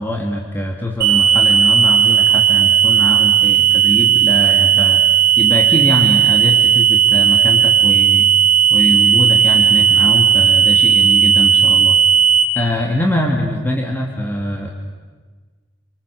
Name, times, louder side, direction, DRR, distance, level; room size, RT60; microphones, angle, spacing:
voice 1, 0.0-8.3 8.7-12.0 12.5-14.7, left 1 dB, 10° left, 0 dB, 2.4 m, -22 dB
sound 1, 1.0-12.4, right 8 dB, 50° right, 3.7 m, -13 dB
29.0 x 24.5 x 7.1 m, 1.4 s
head